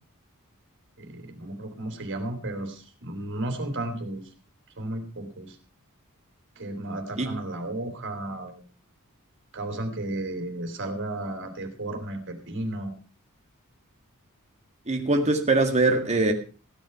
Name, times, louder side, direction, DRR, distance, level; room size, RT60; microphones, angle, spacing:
voice 1, 1.0-4.3 4.8-5.6 6.6-8.7 9.5-12.9, right 1 dB, 55° right, 5 dB, 3.4 m, -33 dB
voice 2, 14.9-16.3, right 2 dB, 30° right, 3 dB, 1.9 m, -22 dB
16.0 x 8.9 x 5.8 m, 0.37 s
head